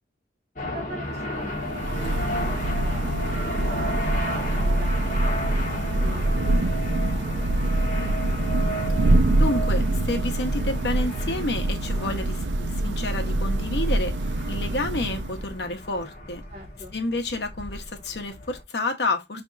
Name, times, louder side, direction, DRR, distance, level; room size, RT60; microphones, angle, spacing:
sound 1, 0.6-18.6, equal, 45° left, 1.4 m, -34 dB
voice 1, 0.7-5.0 5.3-7.5 7.9-8.4 16.5-16.9, right 1 dB, 40° right, 1.3 m, -44 dB
Thunder / Rain, 1.4-15.7, right 1 dB, 85° right, 0.5 m, -25 dB
voice 2, 9.4-14.1 14.5-16.4 16.9-19.4, left 2 dB, 70° left, 1.1 m, -29 dB
4.3 x 3.4 x 2.5 m
head